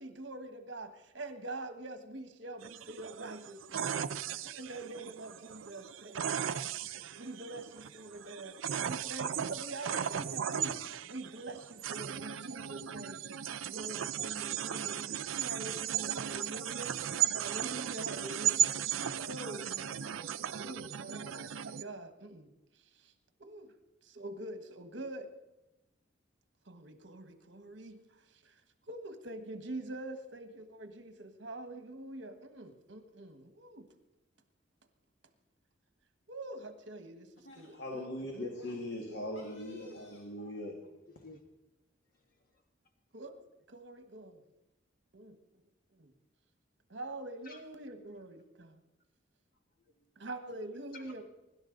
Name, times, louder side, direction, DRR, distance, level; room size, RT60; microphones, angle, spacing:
voice 1, 0.0-8.6 8.8-17.0 17.3-18.7 19.1-22.5 22.9-23.1 23.4-23.7 24.0-25.3 26.6-28.0 28.3-28.5 28.8-33.9 36.3-38.1 38.3-38.6 39.1-40.0 43.1-43.3 43.7-44.4 45.1-45.4 45.9-46.1 46.9-48.8 50.2-51.2, right 2 dB, 65° right, 8 dB, 1.5 m, -45 dB
sound 1, 2.6-21.8, right 9 dB, 85° right, 0.5 m, -36 dB
voice 2, 37.4-40.8, left 1 dB, 65° left, 0 dB, 1.9 m, -40 dB
voice 3, 40.8-41.5 42.1-42.6 47.4-47.6 49.8-50.1 50.9-51.1, left 3 dB, 45° left, 3 dB, 1.6 m, -55 dB
24.0 x 12.0 x 4.0 m, 0.96 s
head